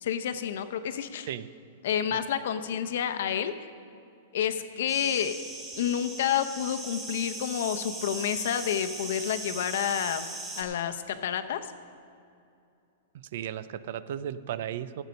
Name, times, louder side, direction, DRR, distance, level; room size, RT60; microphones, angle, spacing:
voice 1, 0.0-1.3 1.8-3.5 4.3-5.4 5.7-10.3 10.6-11.7, left 9 dB, 65° left, 9 dB, 0.8 m, -29 dB
sound 1, 4.9-10.6, right 2 dB, 10° right, 2.4 m, -39 dB
voice 2, 13.3-15.0, right 10 dB, 60° right, 16 dB, 0.5 m, -35 dB
14.5 x 8.1 x 5.3 m, 2.6 s
hypercardioid pair, 155°, 0 cm